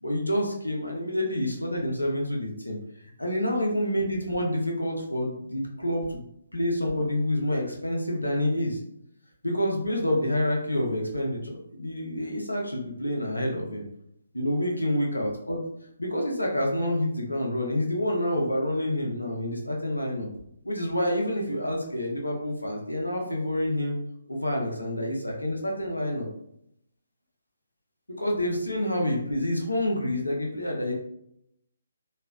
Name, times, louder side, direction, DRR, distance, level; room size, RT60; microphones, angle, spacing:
voice 1, 0.0-2.8 3.2-6.2 6.5-8.8 9.4-13.8 14.3-15.6 16.0-20.3 20.6-23.9 24.3-26.3 28.2-30.9, left 1 dB, 90° left, -1 dB, 0.8 m, -28 dB
3.1 x 2.5 x 2.4 m, 0.74 s
figure-of-eight pair, 140°, 0 cm